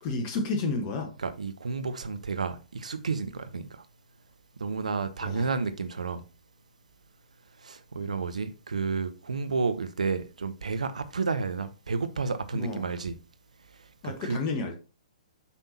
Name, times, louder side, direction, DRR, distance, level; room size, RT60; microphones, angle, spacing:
voice 1, 0.0-1.1 5.2-5.5 12.5-12.9 14.0-14.8, left 3 dB, 30° left, 1.2 m, -31 dB
voice 2, 1.2-3.9 4.6-6.2 7.6-13.2 13.8-14.4, right 4 dB, 70° right, 0.8 m, -31 dB
8.3 x 5.5 x 2.8 m
figure-of-eight pair, 120°, 4 cm